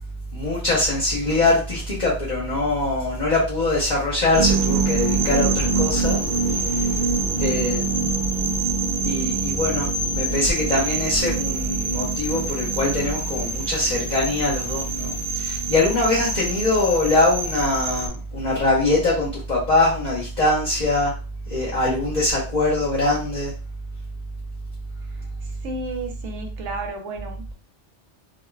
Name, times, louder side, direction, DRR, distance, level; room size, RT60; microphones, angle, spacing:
voice 1, 0.3-6.2 6.5-6.9 7.4-7.9 9.0-21.1 21.5-23.5, left 2 dB, 40° left, -6 dB, 0.9 m, -22 dB
sound 1, 4.3-18.1, right 4 dB, 50° right, 0.8 m, -25 dB
voice 2, 25.6-27.5, right 2 dB, 80° right, 3 dB, 1.0 m, -32 dB
3.9 x 2.1 x 2.2 m, 0.35 s
omnidirectional pair, 1.2 m